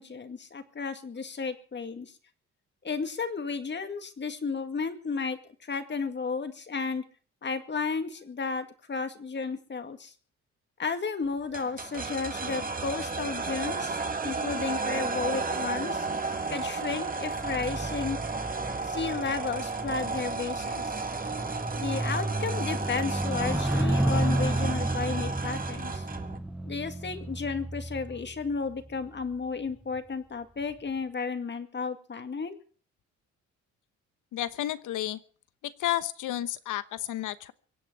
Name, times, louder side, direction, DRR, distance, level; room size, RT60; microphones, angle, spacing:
voice 1, 0.0-2.1 2.8-7.0 7.4-10.1 10.8-14.0 14.2-16.1 16.5-18.2 18.8-21.0 21.8-26.0 26.6-32.6, left 5 dB, 35° left, 8 dB, 2.1 m, -33 dB
sound 1, 11.5-26.4, right 4 dB, 30° right, 2.0 m, -33 dB
sound 2, 17.3-28.9 29.7-30.0, right 1 dB, 5° right, 1.1 m, -32 dB
voice 2, 34.3-35.2 35.6-37.5, left 13 dB, 85° left, 15 dB, 1.1 m, -31 dB
24.0 x 8.2 x 6.2 m, 0.43 s
cardioid pair, 90°, 30 cm